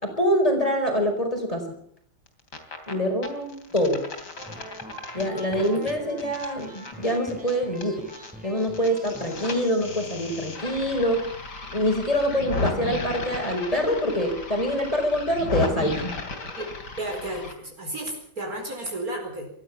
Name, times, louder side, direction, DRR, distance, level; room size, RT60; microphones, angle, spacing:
voice 1, 0.0-1.6 2.9-4.0 5.1-8.0 8.4-11.2 11.7-16.1, equal, 20° left, 4 dB, 5.2 m, -25 dB
sound 1, 2.3-2.9 3.2-8.3 8.6-17.5, left 3 dB, 70° left, 3.6 m, -34 dB
sound 2, 4.4-9.5, right 1 dB, 5° right, 4.3 m, -43 dB
voice 2, 5.5-5.9 16.6-19.5, right 1 dB, 55° right, 1 dB, 5.1 m, -34 dB
23.5 x 15.0 x 7.3 m, 0.65 s
omnidirectional pair, 1.9 m